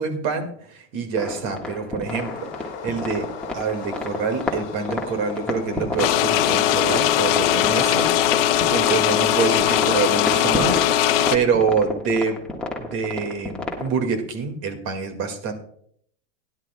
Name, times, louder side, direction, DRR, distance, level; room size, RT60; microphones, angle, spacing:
voice 1, 0.0-8.1 8.5-12.4 12.8-15.5, right 5 dB, 45° right, 7 dB, 2.0 m, -26 dB
sound 1, 1.2-14.0, left 2 dB, 5° left, 1.5 m, -30 dB
sound 2, 2.1-10.1, left 7 dB, 35° left, 2.2 m, -37 dB
sound 3, 6.0-11.4, left 11 dB, 55° left, 0.8 m, -20 dB
17.5 x 11.0 x 2.3 m, 0.64 s
supercardioid pair, 150°, 35 cm